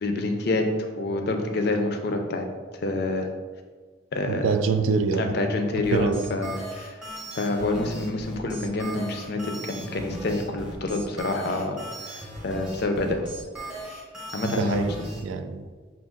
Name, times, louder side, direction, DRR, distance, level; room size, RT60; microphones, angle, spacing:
voice 1, 0.0-2.5 2.8-3.3 4.1-4.5 5.2-7.0 7.3-13.3 14.3-14.8, left 2 dB, 55° left, 5 dB, 0.5 m, -27 dB
voice 2, 4.3-5.4 5.9-6.2 14.4-14.9 15.2-15.6, right 4 dB, 85° right, 9 dB, 0.4 m, -25 dB
sound 1, 5.8-15.2, right 1 dB, 5° right, 0.7 m, -38 dB
5.1 x 2.8 x 3.7 m, 1.4 s
head